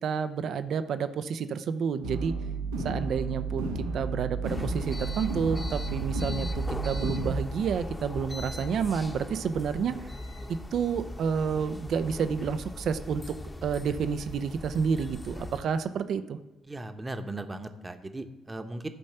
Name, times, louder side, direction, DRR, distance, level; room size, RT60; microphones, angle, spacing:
voice 1, 0.0-2.3 2.8-10.0 10.7-13.4 13.6-16.4, right 6 dB, 60° right, 11 dB, 0.7 m, -30 dB
sound 1, 2.0-7.3, right 3 dB, 85° right, 1.3 m, -32 dB
sound 2, 4.4-15.6, left 1 dB, 20° left, 1.2 m, -39 dB
voice 2, 16.7-18.9, right 2 dB, 20° right, 8 dB, 1.1 m, -37 dB
12.0 x 5.3 x 6.9 m, 1.1 s
hypercardioid pair, 45°, 0 cm